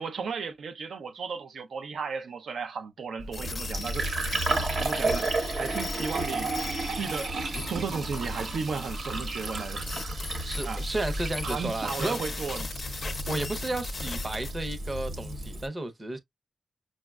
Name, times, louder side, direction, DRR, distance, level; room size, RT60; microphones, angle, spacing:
voice 1, 0.0-4.2 4.8-5.3 5.6-6.5 7.0-9.8 10.6-10.9 11.4-12.7, right 5 dB, 90° right, 0.5 m, -34 dB
Fill (with liquid), 3.2-15.7, right 2 dB, 70° right, 1.1 m, -32 dB
sound 1, 3.3-14.5, left 4 dB, 40° left, 0.4 m, -40 dB
voice 2, 10.4-12.2 13.3-16.2, right 2 dB, 25° right, 0.6 m, -33 dB
6.1 x 2.1 x 2.3 m
wide cardioid pair, 165°, 0 cm